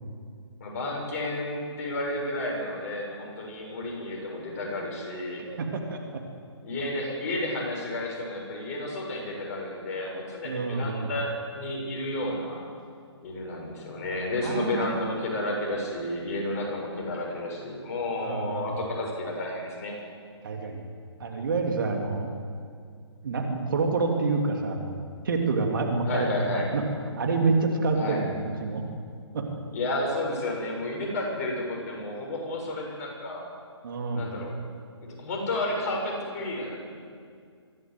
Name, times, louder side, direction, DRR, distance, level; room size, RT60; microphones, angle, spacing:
voice 1, 0.6-5.4 6.6-12.7 13.2-19.9 26.0-26.7 27.9-28.2 29.7-33.4 34.1-34.5 35.0-36.9, left 1 dB, 35° left, -1 dB, 6.7 m, -31 dB
voice 2, 5.4-6.2 10.4-11.1 14.4-14.9 18.2-18.7 20.4-20.8 21.2-22.3 23.2-24.9 25.2-26.8 27.1-28.8 29.3-29.4 33.8-34.3, right 3 dB, 45° right, 2 dB, 2.9 m, -27 dB
23.5 x 16.5 x 7.9 m, 2.2 s
figure-of-eight pair, 140°, 15 cm